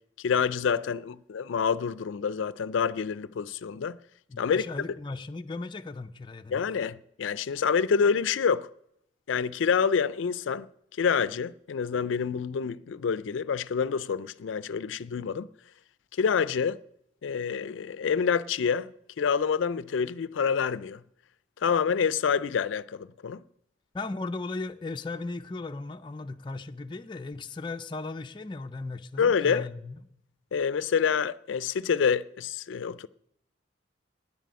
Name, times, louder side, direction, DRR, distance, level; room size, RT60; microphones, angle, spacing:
voice 1, 0.2-4.0 4.4-4.6 6.5-8.7 9.3-10.7 11.0-15.5 16.2-16.8 17.2-18.9 19.2-21.0 21.6-23.4 29.2-29.7 30.5-33.1, left 6 dB, 85° left, 0.4 m, -27 dB
voice 2, 4.3-6.6 23.9-29.9, left 3 dB, 25° left, 0.4 m, -36 dB
10.0 x 7.6 x 9.4 m
head